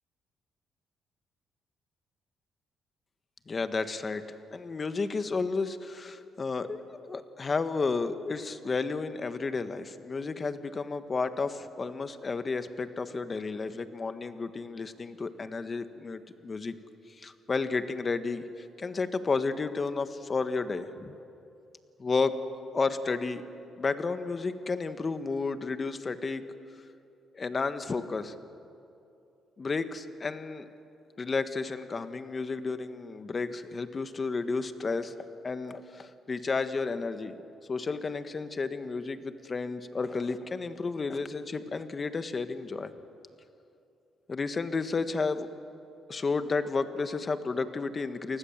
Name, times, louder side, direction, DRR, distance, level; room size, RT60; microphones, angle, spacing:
voice 1, 3.5-4.2 4.5-16.7 17.2-21.1 22.0-22.4 22.7-23.4 23.8-26.4 27.3-28.3 29.6-30.7 31.2-35.1 35.4-37.3 37.7-42.9 44.3-45.5 46.1-48.4, left 4 dB, 35° left, 10 dB, 1.4 m, -32 dB
29.0 x 19.5 x 7.4 m, 2.7 s
cardioid pair, 90°, 0 cm